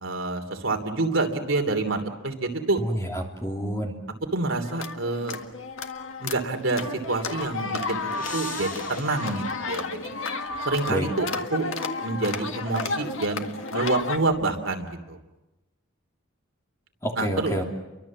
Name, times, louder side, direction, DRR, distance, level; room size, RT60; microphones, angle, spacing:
voice 1, 0.0-2.8 4.3-5.4 6.2-10.1 10.6-11.7 12.0-13.4 13.7-15.2 17.2-17.5, right 3 dB, 75° right, 5 dB, 2.9 m, -27 dB
voice 2, 2.8-3.9 10.9-11.1 17.0-17.6, equal, 15° left, 1 dB, 3.0 m, -28 dB
sound 1, 4.6-14.2, left 4 dB, 75° left, 1.8 m, -32 dB
sound 2, 7.4-10.5, left 3 dB, 40° left, 7.2 m, -43 dB
30.0 x 24.0 x 7.4 m, 1.0 s
head